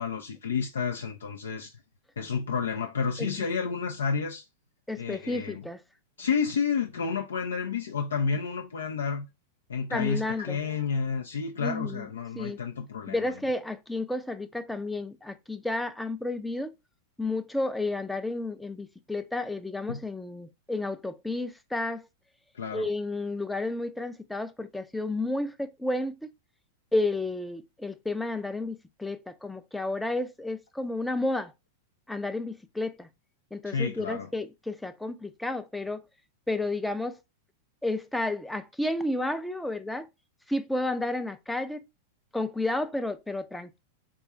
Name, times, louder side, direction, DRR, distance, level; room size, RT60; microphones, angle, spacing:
voice 1, 0.0-1.7 2.2-4.5 5.0-5.6 6.2-9.3 9.7-13.2 19.9-20.0 22.5-22.9 33.7-34.3, left 5 dB, 75° left, 0.4 m, -30 dB
voice 2, 4.9-5.8 9.9-10.6 11.6-12.1 12.4-12.6 13.1-16.7 17.2-22.1 22.7-26.3 26.9-31.5 32.1-33.1 33.5-36.0 36.5-37.2 37.8-40.1 40.5-41.9 42.3-43.8, left 2 dB, 5° left, 0.4 m, -31 dB
3.7 x 2.3 x 4.0 m
figure-of-eight pair, 95°, 0 cm